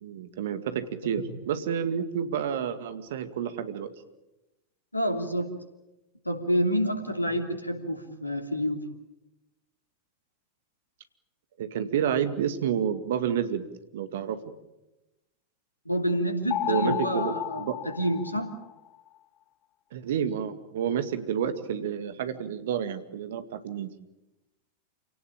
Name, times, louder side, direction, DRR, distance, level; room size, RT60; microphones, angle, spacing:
voice 1, 0.0-3.9 11.6-13.7 13.9-14.4 16.7-17.8 19.9-23.9, right 8 dB, 55° right, 10 dB, 2.2 m, -29 dB
voice 2, 4.9-5.5 6.2-8.8 15.8-17.7 18.0-18.5, equal, 85° left, 6 dB, 3.0 m, -28 dB
sound 1, 16.5-19.0, left 12 dB, 30° left, 0.8 m, -33 dB
28.0 x 18.0 x 9.0 m, 0.98 s
figure-of-eight pair, 90°, 0 cm